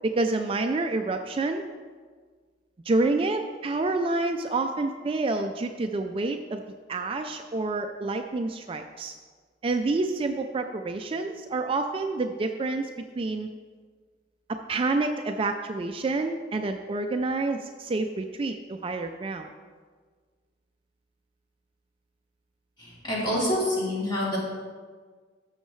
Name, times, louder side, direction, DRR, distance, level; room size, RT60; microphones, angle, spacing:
voice 1, 0.0-1.6 2.8-6.6 6.9-9.1 9.6-13.5 14.5-19.5, right 3 dB, 30° right, 6 dB, 0.3 m, -28 dB
voice 2, 22.8-24.4, left 1 dB, 25° left, -7 dB, 3.0 m, -27 dB
13.5 x 6.4 x 3.1 m, 1.5 s
head